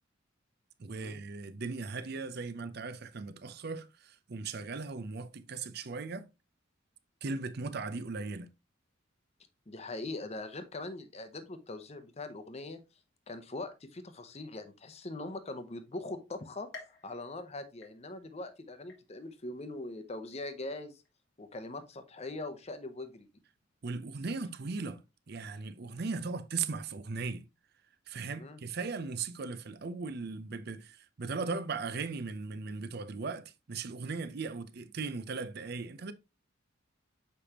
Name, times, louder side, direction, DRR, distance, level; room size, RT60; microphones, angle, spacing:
voice 1, 0.8-6.3 7.2-8.5 23.8-25.0 25.3-27.4 28.1-36.1, right 4 dB, 50° right, 0.6 m, -38 dB
voice 2, 9.7-12.8 13.3-21.0 21.4-23.3 28.4-28.6, left 2 dB, 30° left, 0.8 m, -42 dB
sound 1, 16.7-18.4 18.9-19.5 20.0-20.1 21.0-21.1, left 4 dB, 60° left, 1.5 m, -53 dB
6.7 x 5.1 x 2.9 m
head